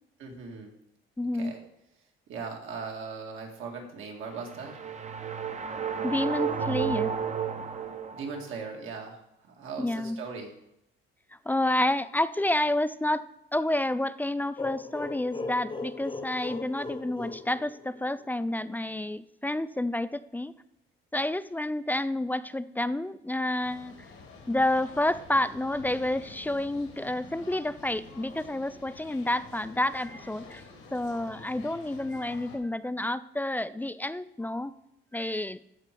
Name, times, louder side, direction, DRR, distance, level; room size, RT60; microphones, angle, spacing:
voice 1, 0.2-0.7 1.3-1.6 2.3-4.8 8.1-10.5, right 5 dB, 75° right, 1 dB, 2.1 m, -39 dB
voice 2, 1.2-1.5 6.0-7.1 7.7-7.8 9.8-10.2 11.5-13.2 13.5-20.5 21.1-23.9 24.5-30.6 30.9-34.7 35.1-35.6, left 1 dB, 10° left, 15 dB, 0.3 m, -29 dB
sound 1, 4.3-8.6, right 7 dB, 35° right, 0.7 m, -32 dB
sound 2, 14.6-18.3, left 3 dB, 25° left, 0.8 m, -38 dB
sound 3, 23.6-32.6, left 4 dB, 90° left, 2.3 m, -48 dB
13.5 x 5.0 x 4.5 m, 0.82 s
cardioid pair, 100°, 21 cm